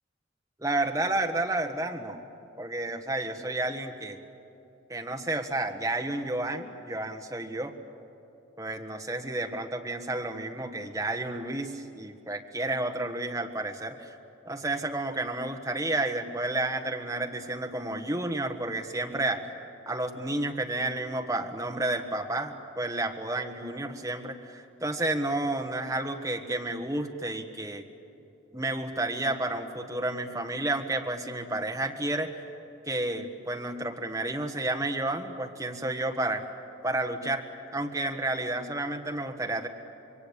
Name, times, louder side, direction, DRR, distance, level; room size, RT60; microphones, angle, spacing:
voice 1, 0.6-2.2 2.6-4.2 4.9-7.7 8.6-14.2 14.4-19.5 19.8-27.9 28.5-32.4 32.8-36.4 36.8-37.4 37.7-39.7, right 2 dB, 15° right, 3 dB, 1.4 m, -31 dB
26.5 x 22.5 x 8.7 m, 2.9 s
head